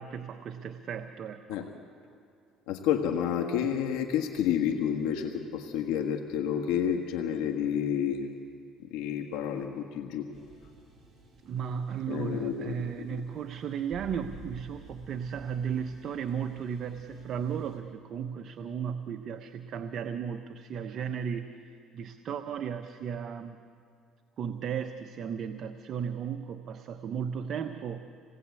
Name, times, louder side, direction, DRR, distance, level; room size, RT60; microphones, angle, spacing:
voice 1, 0.0-1.7 11.4-23.6 24.4-28.0, right 7 dB, 50° right, 6 dB, 1.0 m, -35 dB
voice 2, 2.7-8.3 8.8-10.3 12.1-12.8 13.1-13.2, left 8 dB, 85° left, 2 dB, 1.5 m, -30 dB
sound 1, 10.3-17.8, right 1 dB, 25° right, 5.6 m, -52 dB
27.5 x 19.0 x 8.4 m, 2.5 s
cardioid pair, 110°, 0 cm